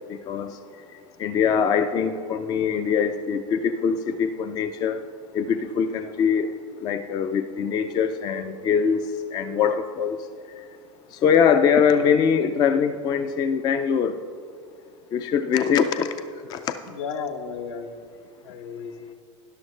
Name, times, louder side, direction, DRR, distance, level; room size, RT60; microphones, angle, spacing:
voice 1, 0.1-0.6 1.2-5.0 5.3-6.5 6.8-9.0 9.3-10.2 11.2-14.2 15.1-16.1 16.5-16.6, left 7 dB, 25° left, 9 dB, 0.3 m, -22 dB
voice 2, 16.9-18.0 18.4-19.1, left 5 dB, 65° left, 6 dB, 1.0 m, -34 dB
12.5 x 10.5 x 3.2 m, 2.1 s
supercardioid pair, 135°, 16 cm